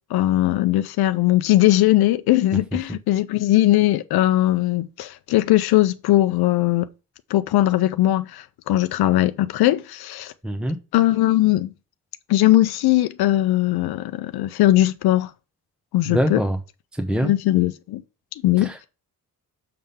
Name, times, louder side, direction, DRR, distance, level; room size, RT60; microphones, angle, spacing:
voice 1, 0.0-6.9 7.3-10.3 10.9-11.7 12.3-15.3 15.9-16.4 17.2-18.0 18.3-18.9, left 15 dB, 90° left, 0.5 m, -19 dB
voice 2, 10.4-10.8 16.1-16.6 16.9-17.3 18.6-18.8, equal, ahead, 0.8 m, -23 dB
6.7 x 3.6 x 5.6 m
cardioid pair, 90°, 37 cm